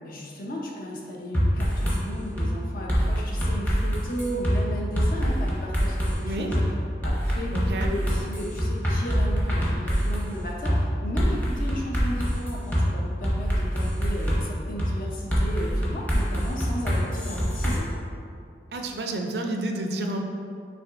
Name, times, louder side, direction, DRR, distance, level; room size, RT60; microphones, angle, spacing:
voice 1, 0.0-6.6 7.0-17.9, equal, 50° left, -2 dB, 0.7 m, -35 dB
sound 1, 1.3-2.0 2.4-2.5 2.9-4.6 5.0-6.1 6.5-6.6 7.0-10.3 10.7-10.8 11.2-12.8 13.2-14.4 14.8-14.9 15.3-17.8, equal, 10° left, 0.8 m, -24 dB
voice 2, 7.5-7.9 18.7-20.2, right 1 dB, 70° right, 3 dB, 0.4 m, -30 dB
5.8 x 3.7 x 2.5 m, 2.5 s
head